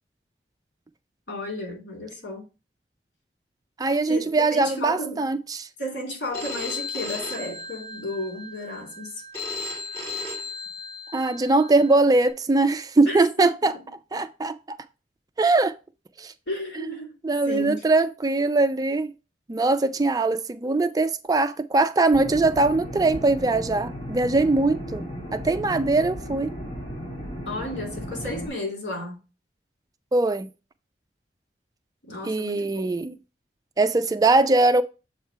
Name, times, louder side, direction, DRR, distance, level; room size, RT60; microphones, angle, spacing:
voice 1, 1.3-2.4 4.1-5.3 5.8-9.2 13.1-13.5 16.5-17.2 17.5-17.8 27.4-29.2 32.1-32.7, left 1 dB, 85° left, 2.6 m, -33 dB
voice 2, 3.8-5.7 11.1-13.8 14.1-14.8 15.4-15.8 16.2-16.3 16.8-16.9 17.2-19.1 19.5-26.5 30.1-30.5 32.2-33.1 33.8-34.8, right 3 dB, 20° right, 0.3 m, -21 dB
Telephone, 6.3-12.3, left 3 dB, 20° left, 2.0 m, -35 dB
sound 1, 22.1-28.5, equal, 35° left, 1.7 m, -35 dB
7.2 x 3.1 x 4.5 m
head